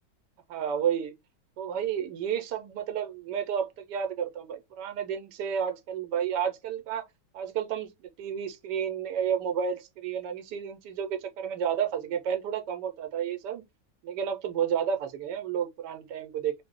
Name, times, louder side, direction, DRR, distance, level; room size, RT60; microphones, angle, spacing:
voice 1, 0.5-1.1 1.6-7.0 7.3-13.6 14.0-16.5, right 8 dB, 80° right, 1.2 m, -31 dB
3.0 x 2.0 x 3.6 m
omnidirectional pair, 1.8 m